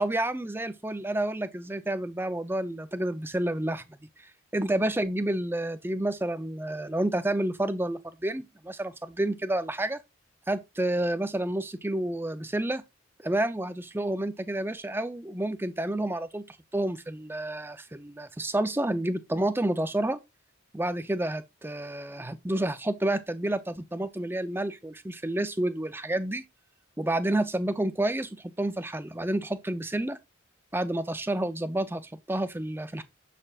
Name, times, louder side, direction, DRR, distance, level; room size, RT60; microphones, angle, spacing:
voice 1, 0.0-3.8 4.5-10.0 10.5-12.8 13.2-20.2 20.7-26.4 27.0-30.2 30.7-33.0, right 1 dB, 10° right, 0.5 m, -29 dB
7.1 x 6.7 x 2.4 m
head